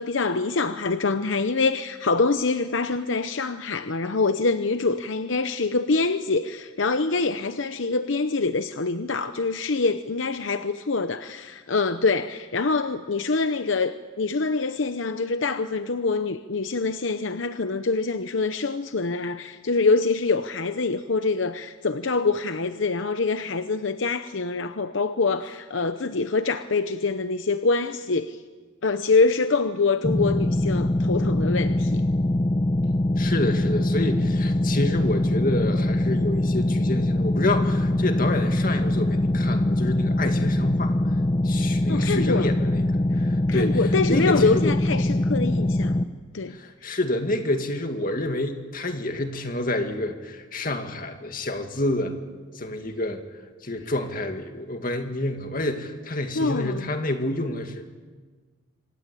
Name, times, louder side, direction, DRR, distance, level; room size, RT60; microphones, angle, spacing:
voice 1, 0.0-28.4 28.8-32.0 41.8-42.5 43.5-45.9 46.3-46.6 56.3-56.9, left 3 dB, 75° left, 0.8 m, -25 dB
sound 1, 30.0-46.0, left 1 dB, 25° left, 0.8 m, -23 dB
voice 2, 33.2-41.0 41.4-44.8 46.5-52.2 52.5-53.2 53.6-57.9, left 1 dB, 45° left, 2.2 m, -28 dB
26.5 x 19.5 x 8.4 m
head